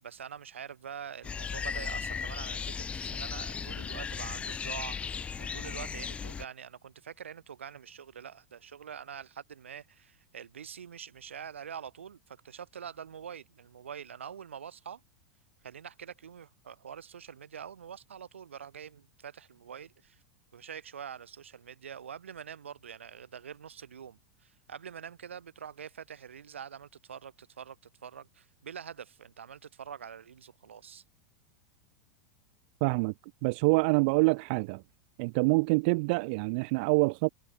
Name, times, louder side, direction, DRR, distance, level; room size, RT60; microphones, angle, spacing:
voice 1, 0.0-15.0 15.6-20.2 20.5-27.8 28.0-31.0, right 8 dB, 85° right, 1.7 m, -45 dB
sound 1, 1.2-6.4, left 6 dB, 20° left, 0.4 m, -36 dB
voice 2, 32.8-33.1 33.4-34.8 35.2-37.3, right 29 dB, 55° right, 0.7 m, -26 dB
hypercardioid pair, 95°, 6 cm